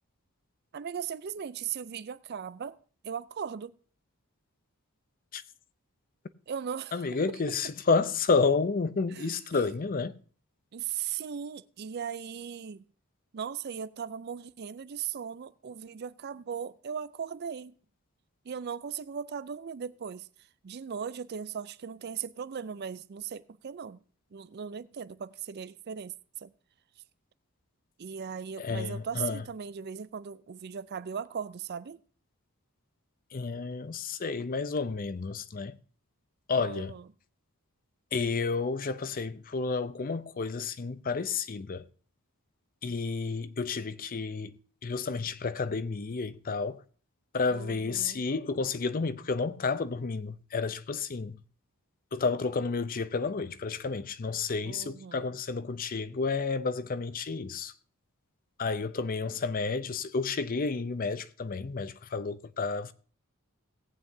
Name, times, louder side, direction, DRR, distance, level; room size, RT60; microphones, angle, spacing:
voice 1, 0.7-2.8 3.0-3.8 6.5-7.6 9.1-9.4 10.7-12.8 13.3-17.7 18.4-20.3 20.6-24.0 24.3-26.5 28.0-32.0 36.6-37.1 47.5-48.2 54.6-55.4, right 7 dB, 45° right, 0.4 m, -38 dB
voice 2, 6.9-10.2 28.6-29.4 33.3-35.8 36.5-37.0 38.1-41.9 42.8-46.8 47.3-51.4 52.1-57.7 58.6-62.9, left 4 dB, 40° left, 0.5 m, -31 dB
18.0 x 8.6 x 2.7 m
head